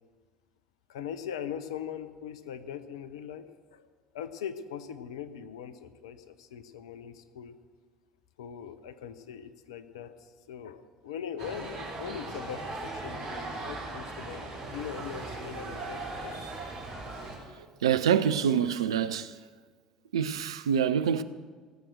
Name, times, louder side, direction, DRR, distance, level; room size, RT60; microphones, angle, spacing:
voice 1, 0.9-3.9 4.1-7.6 8.4-16.6 17.1-17.3, left 8 dB, 70° left, 0.7 m, -41 dB
sound 1, 11.4-17.4, right 2 dB, 55° right, 3.9 m, -38 dB
voice 2, 17.5-19.4 20.1-21.2, right 8 dB, 75° right, 0.5 m, -26 dB
17.5 x 7.6 x 6.4 m
figure-of-eight pair, 55°, 3 cm